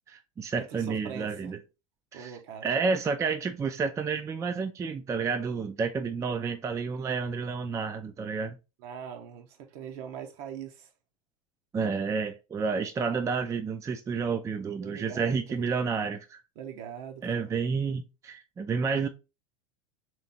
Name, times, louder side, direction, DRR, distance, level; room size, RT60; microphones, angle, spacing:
voice 1, 0.0-1.6 2.1-8.6 11.7-16.4 17.2-19.1, right 5 dB, 15° right, 0.4 m, -30 dB
voice 2, 0.6-1.5 2.1-2.7 8.8-10.9 14.8-15.7 16.6-17.5, right 8 dB, 55° right, 0.9 m, -42 dB
3.3 x 3.1 x 4.0 m
hypercardioid pair, 85°, 18 cm